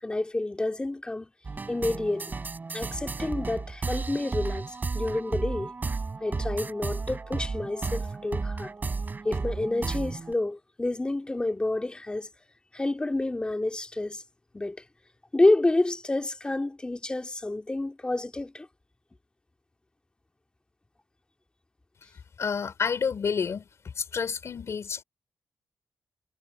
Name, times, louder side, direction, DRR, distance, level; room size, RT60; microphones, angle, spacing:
voice 1, 0.0-1.3 1.7-2.3 2.7-5.7 6.2-8.7 9.2-12.3 12.7-14.2 14.5-14.8 15.3-18.7, left 2 dB, 15° left, 2.6 m, -28 dB
sound 1, 1.4-10.3, right 4 dB, 30° right, 3.4 m, -33 dB
voice 2, 22.4-23.7 24.0-25.0, left 6 dB, 50° left, 4.1 m, -29 dB
cardioid pair, 115°, 6 cm